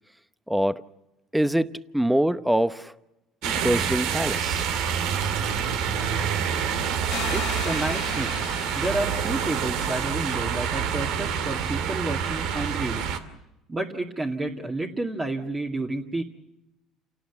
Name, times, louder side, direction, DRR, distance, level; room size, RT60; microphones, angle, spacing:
voice 1, 0.5-0.8 1.3-2.9 3.4-4.7, right 1 dB, 5° right, 13 dB, 0.8 m, -24 dB
sound 1, 3.4-13.2, right 7 dB, 75° right, 2.4 m, -27 dB
sound 2, 7.1-10.0, left 14 dB, 65° left, 1.5 m, -38 dB
voice 2, 7.3-13.1 13.7-16.2, right 2 dB, 20° right, 1 dB, 2.1 m, -30 dB
28.5 x 18.0 x 7.1 m, 0.92 s
cardioid pair, 110°, 0 cm